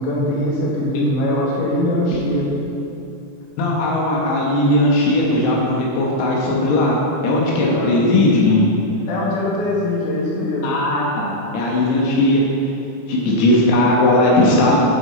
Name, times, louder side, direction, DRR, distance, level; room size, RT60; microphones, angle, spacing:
voice 1, 0.0-2.5 7.7-7.9 9.1-10.7, left 1 dB, 65° left, -5 dB, 3.9 m, -21 dB
voice 2, 3.6-7.0 7.2-8.7 10.6-12.4 13.1-14.8, left 1 dB, 85° left, -3 dB, 4.0 m, -17 dB
16.0 x 6.1 x 4.0 m, 2.7 s
omnidirectional pair, 6.0 m